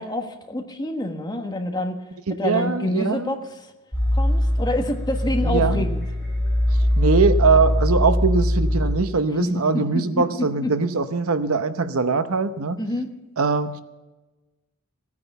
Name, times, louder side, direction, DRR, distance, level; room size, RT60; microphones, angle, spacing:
voice 1, 0.0-2.0 2.4-3.7 4.1-6.0 9.4-9.6 9.9-10.2 10.6-10.7 12.8-13.1, left 1 dB, 20° left, 4 dB, 1.4 m, -27 dB
voice 2, 2.3-3.4 5.4-5.9 7.0-12.8 13.4-13.8, right 4 dB, 75° right, 11 dB, 0.9 m, -22 dB
sound 1, 3.9-8.9, left 1 dB, 5° left, 7.0 m, -21 dB
17.0 x 9.6 x 6.8 m, 1.1 s
head